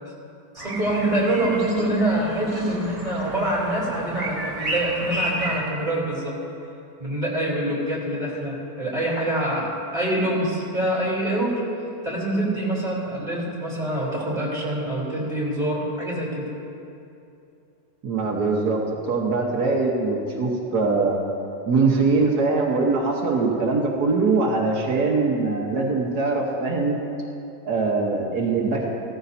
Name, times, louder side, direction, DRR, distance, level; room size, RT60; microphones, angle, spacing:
voice 1, 0.5-6.4 7.0-11.6 12.0-16.5, right 1 dB, 25° right, -6 dB, 3.5 m, -25 dB
sound 1, 0.6-5.6, right 1 dB, 60° right, 2.3 m, -32 dB
voice 2, 18.0-21.1 21.7-27.0 27.6-28.9, right 3 dB, 85° right, -1 dB, 1.8 m, -22 dB
17.0 x 14.0 x 2.8 m, 2.7 s
omnidirectional pair, 1.6 m